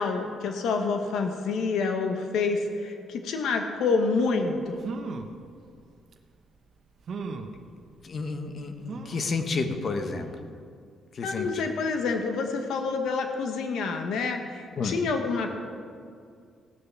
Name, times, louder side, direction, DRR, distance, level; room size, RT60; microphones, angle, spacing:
voice 1, 0.0-4.9 11.2-15.5, left 4 dB, 75° left, 5 dB, 1.2 m, -28 dB
sound 1, 4.4-4.5 4.8-5.4 6.1-6.2 7.1-7.6 8.9-9.4 9.9-10.0 10.3-10.4, right 4 dB, 60° right, 1.0 m, -36 dB
voice 2, 8.0-10.3 11.1-11.5 14.8-15.0, left 4 dB, 50° left, 6 dB, 1.1 m, -30 dB
16.5 x 6.6 x 6.1 m, 2.3 s
cardioid pair, 90°, 0 cm